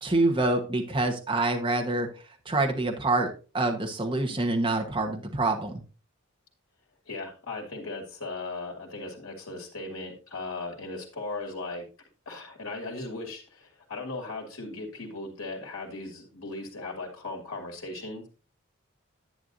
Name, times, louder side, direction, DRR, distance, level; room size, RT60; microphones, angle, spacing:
voice 1, 0.0-2.1 2.4-5.7, right 2 dB, 25° right, 2 dB, 1.2 m, -26 dB
voice 2, 7.1-11.9 12.3-18.3, left 2 dB, 80° left, 0 dB, 2.5 m, -37 dB
10.5 x 9.8 x 2.7 m, 0.34 s
head